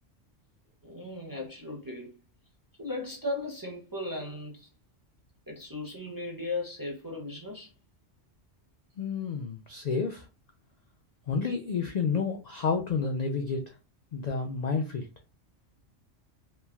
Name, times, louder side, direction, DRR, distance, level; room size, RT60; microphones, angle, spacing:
voice 1, 0.8-2.1 2.8-4.7 5.5-7.7, left 2 dB, 25° right, 0.4 m, -36 dB
voice 2, 9.0-10.2 11.3-13.6 14.1-15.1, left 5 dB, 75° left, 0.3 m, -30 dB
3.2 x 2.2 x 2.3 m
omnidirectional pair, 1.3 m